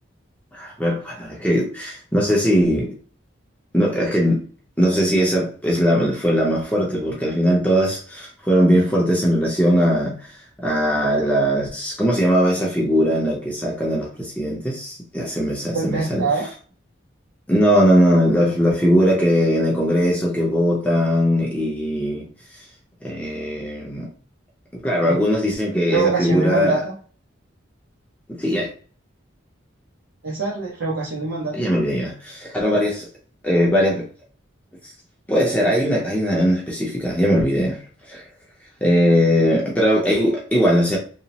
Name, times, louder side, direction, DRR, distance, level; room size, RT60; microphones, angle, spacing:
voice 1, 0.5-3.0 3.7-4.4 4.8-10.2 10.6-16.3 17.5-22.3 23.0-24.1 24.8-26.8 28.3-28.7 31.5-33.1 33.4-34.0 35.3-37.8 38.1-38.2 38.8-41.0, equal, 5° left, 0.6 m, -19 dB
voice 2, 15.7-16.5 25.0-25.1 25.9-26.9 30.2-31.7, right 4 dB, 85° right, 0.8 m, -24 dB
2.9 x 2.0 x 2.8 m
head